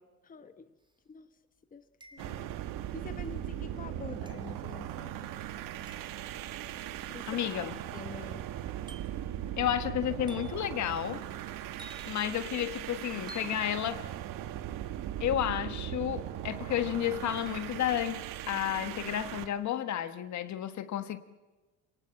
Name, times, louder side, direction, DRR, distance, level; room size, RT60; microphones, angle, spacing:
voice 1, 0.2-0.6 1.1-1.3 1.7-1.8 2.1-2.5 2.9-5.1 7.1-7.4 7.9-8.4, left 5 dB, 25° left, 9 dB, 1.2 m, -46 dB
sound 1, 0.8-0.9 2.0-2.5 4.3-4.6 5.9-6.2 7.5-7.8 8.9-9.3 10.3-10.7 11.8-12.3 13.3-13.6, equal, 15° right, 2.7 m, -51 dB
sound 2, 2.2-19.5, right 12 dB, 75° right, 1.4 m, -39 dB
voice 2, 7.3-7.8 9.6-11.2 12.1-14.0 15.2-21.2, left 11 dB, 55° left, 11 dB, 1.5 m, -32 dB
27.0 x 18.5 x 7.6 m, 1.2 s
cardioid pair, 105°, 34 cm